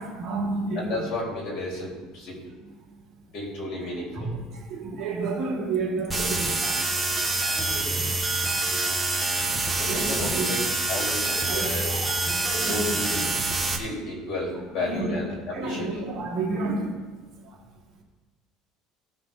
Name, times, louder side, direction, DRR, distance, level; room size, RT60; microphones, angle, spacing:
voice 1, 0.0-1.1 2.6-2.7 4.1-6.9 7.4-8.2 8.4-8.9 9.6-10.7 11.5-13.2 14.7-16.9 17.4-17.6, right 3 dB, 30° right, -7 dB, 2.9 m, -31 dB
voice 2, 0.8-2.4 3.3-4.3 7.9-8.1 9.8-10.6 10.9-11.9 12.6-13.2 13.8-16.1 16.5-16.8, left 2 dB, 50° left, -3 dB, 3.9 m, -33 dB
sound 1, 6.1-13.8, right 2 dB, 5° right, 1.1 m, -26 dB
16.5 x 5.9 x 3.9 m, 1.3 s
cardioid pair, 165°, 0 cm